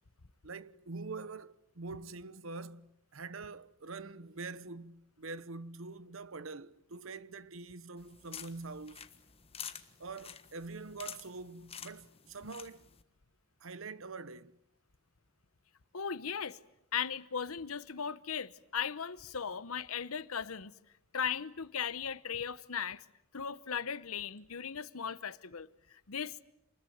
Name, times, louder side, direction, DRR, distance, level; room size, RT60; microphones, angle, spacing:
voice 1, 0.4-9.1 10.0-12.9 13.6-14.6, right 3 dB, 65° right, 1.0 m, -45 dB
sound 1, 8.0-13.0, left 8 dB, 30° left, 1.4 m, -49 dB
voice 2, 15.9-16.6 16.9-20.7 21.1-23.0 23.3-26.4, left 7 dB, 90° left, 1.0 m, -37 dB
27.5 x 21.0 x 9.4 m
head